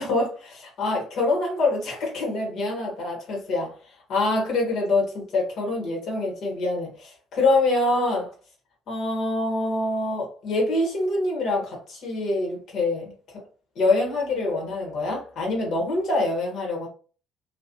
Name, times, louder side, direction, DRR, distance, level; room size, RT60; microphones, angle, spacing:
voice 1, 0.0-3.7 4.1-8.3 8.9-13.1 13.7-16.9, left 2 dB, 55° left, 1.5 m, -25 dB
3.1 x 2.7 x 2.8 m
figure-of-eight pair, 50°, 0 cm